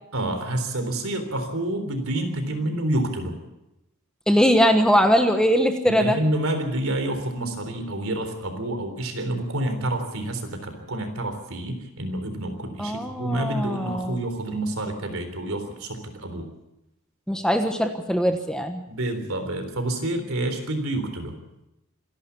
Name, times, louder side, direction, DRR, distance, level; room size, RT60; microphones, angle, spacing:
voice 1, 0.1-3.4 5.9-16.5 18.9-21.4, right 1 dB, 65° right, 7 dB, 3.7 m, -28 dB
voice 2, 4.3-6.2 12.8-14.2 17.3-18.8, equal, 5° left, 6 dB, 1.2 m, -21 dB
26.5 x 11.5 x 8.4 m, 0.92 s
head